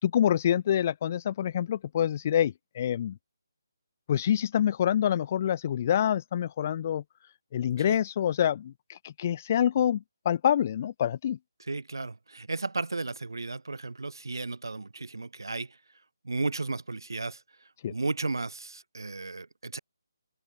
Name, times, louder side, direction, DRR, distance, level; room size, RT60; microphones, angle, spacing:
voice 1, 0.0-3.2 4.1-7.0 7.5-11.4 17.8-17.9, left 10 dB, 35° left, 4.0 m, -26 dB
voice 2, 11.7-15.7 16.2-17.4 17.9-19.8, right 3 dB, 70° right, 7.4 m, -34 dB
figure-of-eight pair, 150°, 2 cm